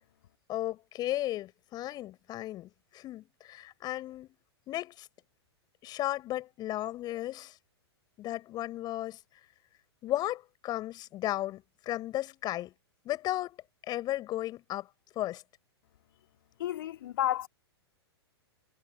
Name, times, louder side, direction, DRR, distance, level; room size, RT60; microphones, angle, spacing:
voice 1, 0.5-4.3 4.7-5.1 5.8-7.5 8.2-9.2 10.0-12.7 13.0-14.9 15.2-15.4, left 14 dB, 30° left, 7.7 m, -35 dB
voice 2, 16.6-17.5, left 12 dB, 55° left, 2.7 m, -31 dB
figure-of-eight pair, 105°, 14 cm